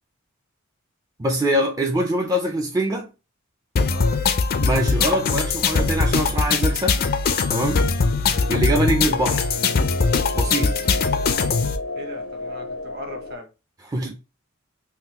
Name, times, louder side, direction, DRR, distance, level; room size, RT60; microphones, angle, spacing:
voice 1, 1.2-3.1 4.6-7.0 7.5-7.9 8.5-9.5 10.3-10.8 13.8-14.2, right 1 dB, 15° right, 0.4 m, -23 dB
sound 1, 3.8-11.8, left 4 dB, 45° left, 0.4 m, -21 dB
voice 2, 3.9-4.2 11.9-13.5, left 1 dB, 50° right, 1.0 m, -37 dB
sound 2, 8.3-13.4, left 2 dB, 80° left, 0.7 m, -32 dB
3.8 x 2.3 x 2.8 m
head